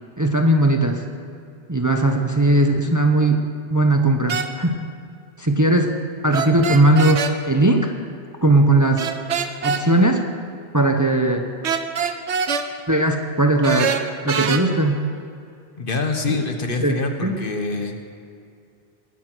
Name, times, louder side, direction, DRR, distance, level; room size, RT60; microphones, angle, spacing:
voice 1, 0.2-1.0 1.7-3.4 3.7-4.7 5.4-6.0 6.2-7.9 8.4-9.1 9.6-10.2 10.7-11.4 12.9-14.0 14.2-15.0 16.3-16.4 16.8-17.4, right 1 dB, 20° right, 4 dB, 0.8 m, -18 dB
sound 1, 4.3-4.5 6.3-7.3 9.0-9.8 11.6-12.7 13.6-14.6, right 6 dB, 85° right, 1.1 m, -23 dB
voice 2, 15.8-18.1, left 3 dB, 55° left, 5 dB, 1.3 m, -25 dB
19.5 x 9.2 x 6.2 m, 2.4 s
omnidirectional pair, 1.1 m